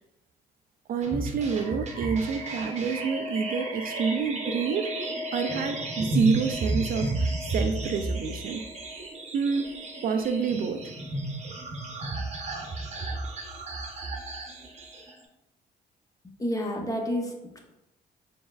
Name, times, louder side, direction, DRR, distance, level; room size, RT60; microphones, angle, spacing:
voice 1, 0.9-5.0 5.3-8.7 9.3-9.7 10.0-10.8, right 5 dB, 55° right, 7 dB, 0.4 m, -28 dB
sound 1, 1.0-15.1, right 2 dB, 40° right, 0.8 m, -33 dB
voice 2, 16.4-17.6, equal, 20° left, 1 dB, 0.8 m, -30 dB
4.4 x 3.4 x 2.3 m, 0.90 s
cardioid pair, 90°, 17 cm